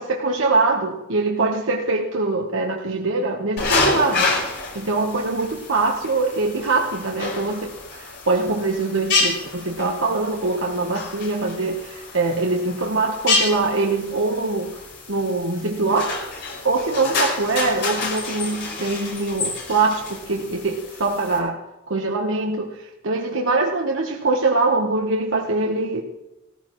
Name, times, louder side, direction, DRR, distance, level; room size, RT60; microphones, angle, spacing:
voice 1, 0.0-4.3 4.7-16.3 16.6-26.0, right 3 dB, 75° right, 0 dB, 1.2 m, -23 dB
sound 1, 3.6-21.4, left 3 dB, 60° left, 4.9 m, -28 dB
18.0 x 14.5 x 3.1 m, 1.0 s
head